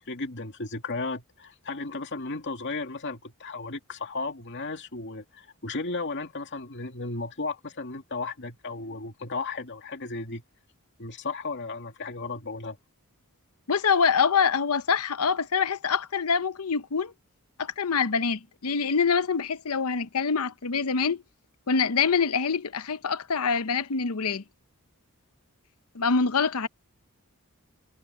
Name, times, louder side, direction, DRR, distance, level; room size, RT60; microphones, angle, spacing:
voice 1, 0.0-10.4 11.0-12.8, left 3 dB, 55° left, 2.6 m, -34 dB
voice 2, 13.7-17.1 17.6-21.2 21.7-24.4 25.9-26.7, left 5 dB, 75° left, 0.8 m, -25 dB
head